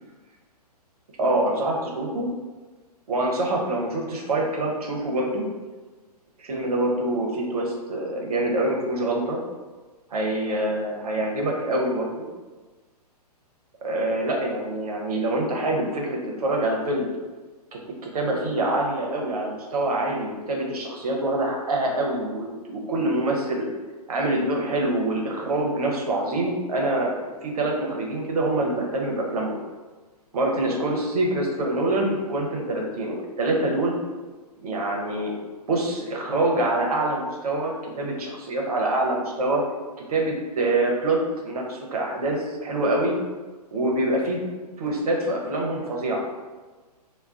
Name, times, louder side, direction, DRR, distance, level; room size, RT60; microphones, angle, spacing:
voice 1, 1.2-2.3 3.1-5.4 6.4-9.4 10.1-12.3 13.8-17.1 17.7-17.8 18.1-23.7 24.1-29.6 30.3-33.9 34.6-35.3 35.7-39.6 40.1-43.1 43.7-44.4 44.8-46.2, right 1 dB, 65° right, -1 dB, 0.8 m, -25 dB
2.3 x 2.2 x 3.5 m, 1.3 s
figure-of-eight pair, 125°, 20 cm